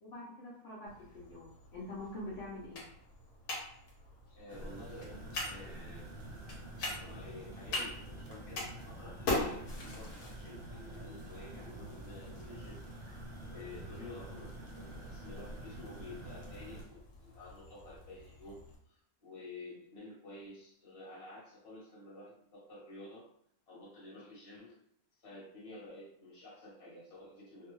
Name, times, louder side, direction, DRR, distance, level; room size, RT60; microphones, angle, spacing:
voice 1, 0.0-2.9, left 1 dB, 60° left, -6 dB, 0.9 m, -45 dB
sound 1, 0.9-18.8, left 2 dB, 80° left, 1.3 m, -44 dB
voice 2, 4.3-9.6 9.9-18.6 18.9-23.3 23.7-24.7 25.2-27.7, left 2 dB, 30° left, -5 dB, 0.8 m, -51 dB
sound 2, 4.5-16.8, right 1 dB, 85° right, 0.4 m, -47 dB
2.6 x 2.2 x 3.0 m, 0.70 s
omnidirectional pair, 1.6 m